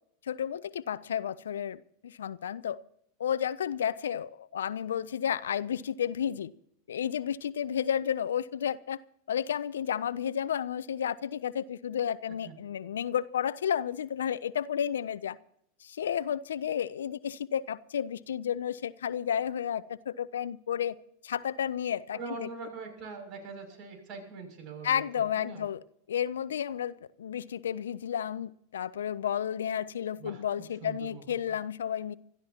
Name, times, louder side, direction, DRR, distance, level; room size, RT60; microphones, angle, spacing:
voice 1, 0.2-2.8 3.2-6.5 6.9-9.0 9.3-15.4 15.8-21.0 21.2-22.5 24.8-25.8 26.1-32.2, left 9 dB, 80° left, 0.5 m, -32 dB
voice 2, 22.1-25.0 25.3-25.7 30.2-30.4 30.8-31.2, right 4 dB, 45° right, 6.6 m, -42 dB
25.5 x 13.5 x 2.9 m
hypercardioid pair, 95°, 0 cm